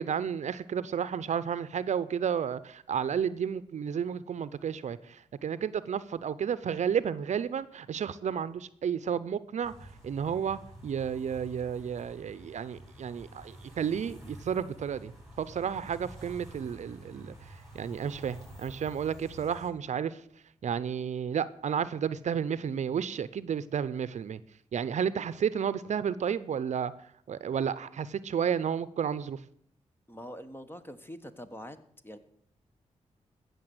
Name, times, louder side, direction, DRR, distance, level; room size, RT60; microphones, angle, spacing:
voice 1, 0.0-15.1 15.4-17.3 17.7-20.2 20.6-24.4 24.7-26.9 27.3-29.4, right 8 dB, 70° right, 0.6 m, -32 dB
sound 1, 9.6-19.7, right 1 dB, ahead, 7.8 m, -49 dB
voice 2, 30.1-31.8 32.0-32.2, equal, 15° left, 1.4 m, -44 dB
15.5 x 6.8 x 7.8 m
cardioid pair, 60°, 13 cm